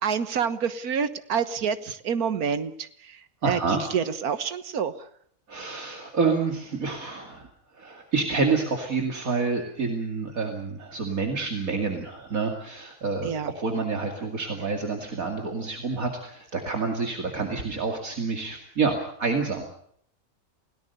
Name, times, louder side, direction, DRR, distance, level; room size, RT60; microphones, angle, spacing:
voice 1, 0.0-5.1 13.2-13.5 14.6-14.7, right 7 dB, 90° right, 12 dB, 1.7 m, -28 dB
voice 2, 3.4-3.8 5.5-7.5 7.7-13.3 13.6-19.6, right 4 dB, 70° right, 3 dB, 2.8 m, -28 dB
28.5 x 18.0 x 6.7 m, 0.66 s
omnidirectional pair, 1.5 m